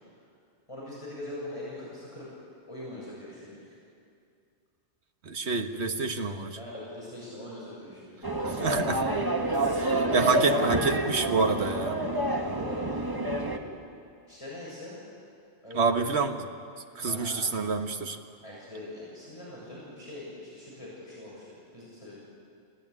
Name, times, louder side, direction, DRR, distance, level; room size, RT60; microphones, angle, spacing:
voice 1, 0.7-2.3 2.7-3.8 6.5-8.5 9.4-10.4 12.2-13.0 14.3-15.0 15.6-16.0 17.0-17.4 18.4-22.2, left 1 dB, 25° left, -7 dB, 7.5 m, -42 dB
voice 2, 5.2-6.6 8.4-9.0 9.8-12.0 15.7-16.5 17.0-18.2, right 4 dB, 70° right, 6 dB, 1.7 m, -28 dB
sound 1, 8.2-13.6, right 1 dB, 20° right, 1.7 m, -28 dB
28.0 x 17.5 x 9.8 m, 2.4 s
omnidirectional pair, 1.1 m